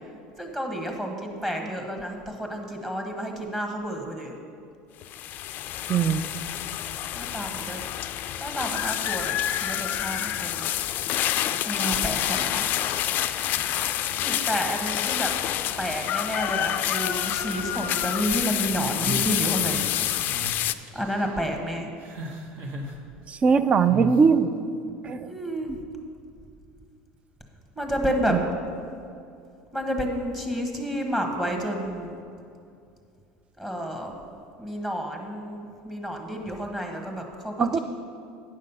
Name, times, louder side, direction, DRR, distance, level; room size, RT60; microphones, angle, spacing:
voice 1, 0.4-4.4 7.1-7.8 8.4-10.7 11.6-12.7 14.2-15.3 15.8-19.9 20.9-21.9 25.2-25.8 27.7-28.3 29.7-32.2 33.6-34.1 34.6-37.8, equal, 10° right, 2 dB, 1.3 m, -30 dB
sound 1, 5.0-20.7, left 12 dB, 50° left, 0.4 m, -28 dB
voice 2, 5.9-6.2 23.3-24.5 25.0-25.3 28.3-28.4 37.6-37.8, right 6 dB, 30° right, 12 dB, 0.4 m, -20 dB
sound 2, 19.0-19.9 20.3-20.5 20.9-21.4 22.0-22.9 23.9-24.2, right 3 dB, 60° right, 1.4 m, -35 dB
9.6 x 6.4 x 5.5 m, 2.5 s
supercardioid pair, 115°, 4 cm